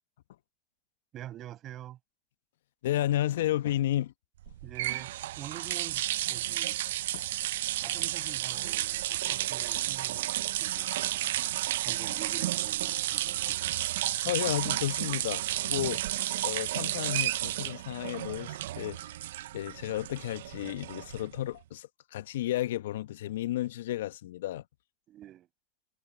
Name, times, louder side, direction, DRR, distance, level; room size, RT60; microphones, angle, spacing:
voice 1, 1.1-2.0 4.6-6.8 7.8-11.3 11.8-13.8 25.1-25.5, right 12 dB, 45° right, 7.3 m, -46 dB
voice 2, 2.8-4.1 7.1-7.3 14.2-16.1 16.4-19.0 19.5-24.6, left 13 dB, 75° left, 1.2 m, -32 dB
sound 1, 4.4-21.5, right 14 dB, 75° right, 0.7 m, -32 dB
hypercardioid pair, 80°, 0 cm